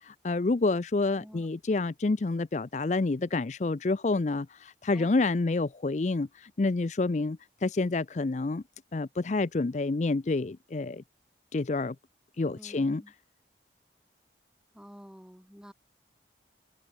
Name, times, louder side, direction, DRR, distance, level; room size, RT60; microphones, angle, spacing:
voice 1, 0.0-8.6 8.9-11.0 11.5-12.0 12.4-13.0, left 3 dB, 40° left, 0.5 m, -28 dB
voice 2, 1.2-1.5 4.9-5.2 12.4-13.1 14.7-15.7, equal, 5° right, 6.3 m, -50 dB
head